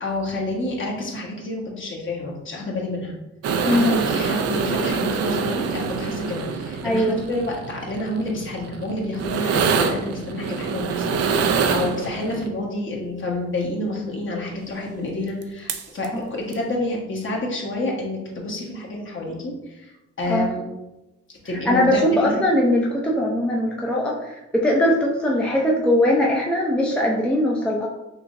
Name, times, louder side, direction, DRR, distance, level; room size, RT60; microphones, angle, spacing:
voice 1, 0.0-3.1 3.7-19.9 20.2-20.6 21.4-22.4, left 1 dB, 40° left, -2 dB, 1.3 m, -29 dB
sound 1, 3.4-12.5 15.4-15.5 15.7-16.1 16.5-16.6, right 5 dB, 55° right, 0.5 m, -25 dB
voice 2, 6.8-7.2 20.3-20.5 21.7-27.9, left 1 dB, 5° left, -3 dB, 0.6 m, -20 dB
5.8 x 2.9 x 2.6 m, 0.97 s
cardioid pair, 90°, 30 cm